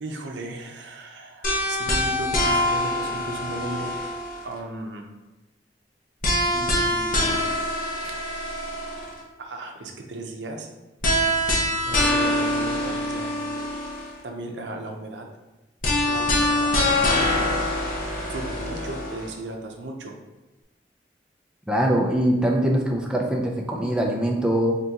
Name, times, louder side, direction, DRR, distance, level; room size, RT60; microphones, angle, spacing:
voice 1, 0.0-5.1 6.5-7.5 8.0-8.1 9.4-10.7 11.8-13.6 14.2-15.3 16.1-17.6 18.3-20.1, right 2 dB, 90° right, 2 dB, 0.6 m, -36 dB
sound 1, 1.4-4.6 6.2-9.2 11.0-14.2 15.8-19.3, left 1 dB, 50° left, 0.8 m, -24 dB
voice 2, 21.7-24.8, right 1 dB, 5° right, -1 dB, 0.4 m, -22 dB
3.7 x 3.6 x 2.8 m, 1.1 s
head